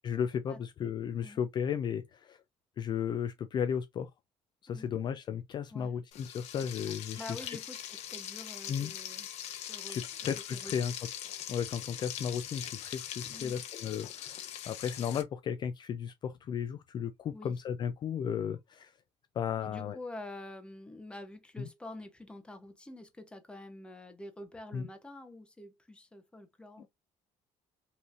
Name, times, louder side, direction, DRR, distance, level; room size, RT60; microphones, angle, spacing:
voice 1, 0.0-2.4 2.8-4.1 4.6-7.5 8.7-8.9 9.5-9.6 9.9-10.9 11.5-18.9 19.4-20.0 21.6-21.7 24.7-24.9, left 8 dB, 35° left, 0.4 m, -35 dB
Frying (food), 6.1-15.2, left 10 dB, 60° left, 0.9 m, -42 dB
voice 2, 7.1-9.3 9.7-10.9 13.3-13.6 17.3-17.5 19.6-26.9, left 1 dB, 10° left, 0.8 m, -47 dB
5.4 x 3.2 x 2.5 m
cardioid pair, 175°, 13 cm